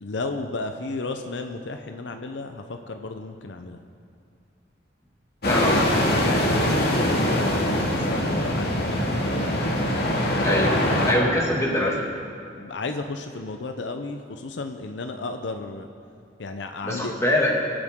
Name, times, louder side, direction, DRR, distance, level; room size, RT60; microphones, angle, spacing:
voice 1, 0.0-3.8 6.2-9.4 10.4-11.0 12.6-15.9 16.4-17.2, left 3 dB, 75° left, 6 dB, 0.7 m, -33 dB
sound 1, 5.4-11.1, left 1 dB, 60° left, 2.1 m, -23 dB
voice 2, 5.4-5.9 10.4-10.8 11.1-12.0 16.8-17.5, left 1 dB, 15° left, -3 dB, 2.2 m, -23 dB
25.0 x 8.7 x 3.7 m, 2.4 s
head